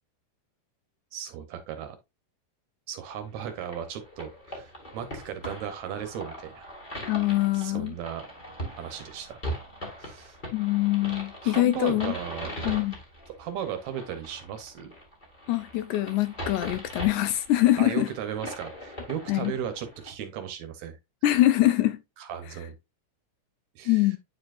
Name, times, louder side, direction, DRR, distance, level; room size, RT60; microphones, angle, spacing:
voice 1, 1.1-2.0 2.9-6.7 7.5-8.3 8.8-9.4 10.0-10.4 11.4-12.6 13.4-14.9 17.8-21.0 22.2-22.8 23.8-24.2, right 9 dB, 70° right, 1.9 m, -36 dB
sound 1, 3.4-20.1, equal, 20° left, 1.5 m, -40 dB
voice 2, 7.1-7.9 10.5-12.1 12.6-13.0 15.5-18.1 19.3-19.5 21.2-22.0 23.9-24.2, left 15 dB, 80° left, 1.9 m, -24 dB
9.4 x 4.4 x 2.4 m
omnidirectional pair, 3.7 m